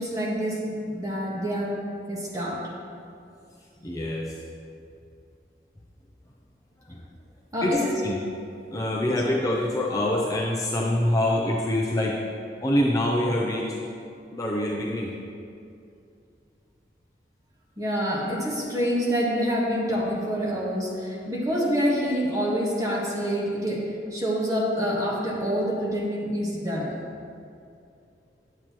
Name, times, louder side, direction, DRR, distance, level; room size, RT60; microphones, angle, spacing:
voice 1, 0.0-1.8 2.1-2.6 7.5-7.9 9.1-9.2 17.8-26.9, equal, 20° right, -4 dB, 1.3 m, -27 dB
voice 2, 3.8-4.4 6.9-7.0 7.6-7.7 8.0-8.2 8.5-12.2 12.6-13.8 14.3-15.1, left 1 dB, 20° left, -2 dB, 0.5 m, -25 dB
10.0 x 7.7 x 3.0 m, 2.5 s
head